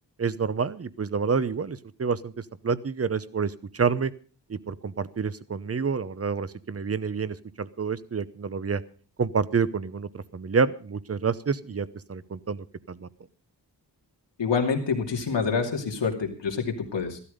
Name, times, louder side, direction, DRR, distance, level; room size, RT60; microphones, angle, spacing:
voice 1, 0.2-4.1 4.5-8.8 9.2-13.1, right 5 dB, 35° right, 17 dB, 0.8 m, -28 dB
voice 2, 14.4-17.2, left 5 dB, 85° left, 2 dB, 2.7 m, -27 dB
14.5 x 12.5 x 5.1 m, 0.40 s
wide cardioid pair, 105°, 42 cm